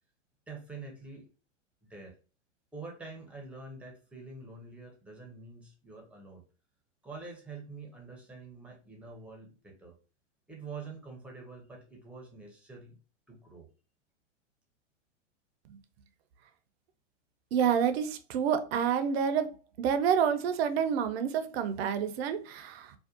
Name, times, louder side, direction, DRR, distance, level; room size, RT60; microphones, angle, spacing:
voice 1, 0.5-1.3 1.9-2.1 2.7-6.4 7.0-10.0 10.5-13.0 13.3-13.7, right 4 dB, 5° right, 0 dB, 0.6 m, -46 dB
voice 2, 17.5-19.5 19.8-22.9, right 7 dB, 55° right, 10 dB, 0.5 m, -28 dB
2.6 x 2.2 x 2.4 m, 0.35 s
hypercardioid pair, 110°, 38 cm